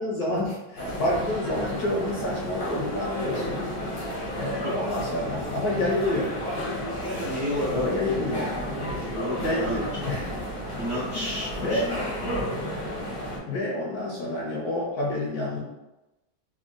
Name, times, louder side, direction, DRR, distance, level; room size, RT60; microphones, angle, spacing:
voice 1, 0.0-3.7 4.3-6.3 7.7-8.5 9.3-10.4 11.1-11.9 13.5-15.6, left 1 dB, 65° left, -3 dB, 1.0 m, -28 dB
sound 1, 0.8-13.4, equal, 45° left, 0.6 m, -32 dB
voice 2, 7.1-8.2 8.5-9.8 10.8-12.3, left 1 dB, 65° right, -7 dB, 0.6 m, -32 dB
3.6 x 2.2 x 3.7 m, 1.0 s
omnidirectional pair, 2.2 m